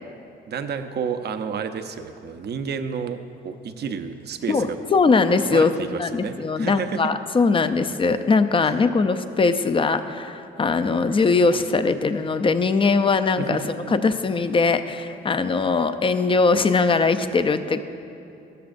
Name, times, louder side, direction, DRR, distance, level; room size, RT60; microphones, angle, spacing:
voice 1, 0.5-3.2 3.4-5.0 5.4-7.0 8.6-8.8 13.4-14.0, right 6 dB, 55° right, 8 dB, 0.7 m, -31 dB
voice 2, 4.5-5.7 6.0-13.6 13.9-17.8, left 4 dB, 25° left, 10 dB, 0.5 m, -21 dB
13.5 x 13.5 x 2.6 m, 2.7 s
cardioid pair, 90°, 20 cm